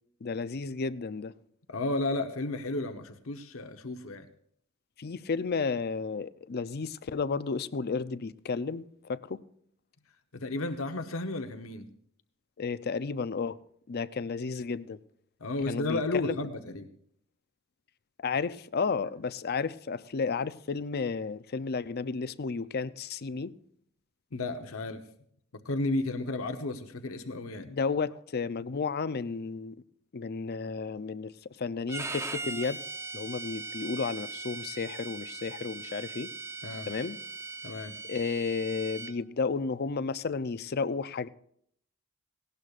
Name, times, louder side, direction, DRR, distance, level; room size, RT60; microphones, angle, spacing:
voice 1, 0.2-1.3 5.0-9.4 12.6-13.6 13.9-15.0 15.7-16.4 18.2-23.5 27.6-29.8 30.1-32.8 33.1-36.3 36.9-37.2 38.1-41.3, left 4 dB, 50° left, 0.5 m, -32 dB
voice 2, 1.7-4.3 10.3-11.9 15.4-16.9 24.3-25.0 25.6-27.7 36.6-36.9 37.6-37.9, left 2 dB, 85° left, 1.0 m, -33 dB
Bowed string instrument, 31.9-39.1, right 3 dB, 15° right, 0.6 m, -40 dB
18.5 x 18.0 x 2.5 m
head